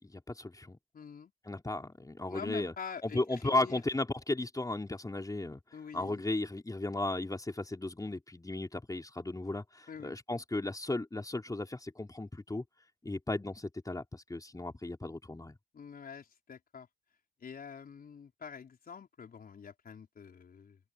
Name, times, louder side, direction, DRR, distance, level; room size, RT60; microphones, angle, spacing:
voice 1, 0.0-0.8 1.4-2.7 3.0-5.6 5.9-12.6 13.0-15.5, left 2 dB, 15° left, 4.3 m, -35 dB
voice 2, 0.9-1.3 2.3-3.8 5.7-6.2 9.9-10.2 15.7-16.9 17.4-20.8, left 6 dB, 50° left, 4.2 m, -46 dB
open air
hypercardioid pair, 45°, 20 cm